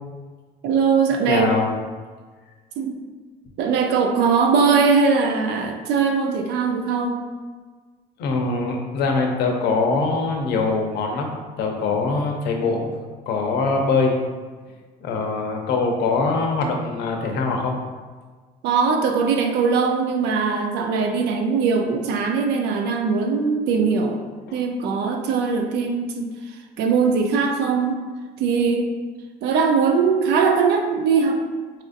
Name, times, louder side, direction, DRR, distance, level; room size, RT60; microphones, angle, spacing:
voice 1, 0.6-1.5 2.8-3.0 3.6-7.3 18.6-24.2 24.5-28.0 28.4-28.9 29.4-31.4, right 5 dB, 80° right, 4 dB, 0.5 m, -21 dB
voice 2, 1.3-1.7 8.2-12.9 13.3-14.2 15.0-17.8 24.5-24.6, left 3 dB, 75° left, 2 dB, 0.6 m, -23 dB
4.2 x 2.5 x 2.5 m, 1.4 s
cardioid pair, 110°, 17 cm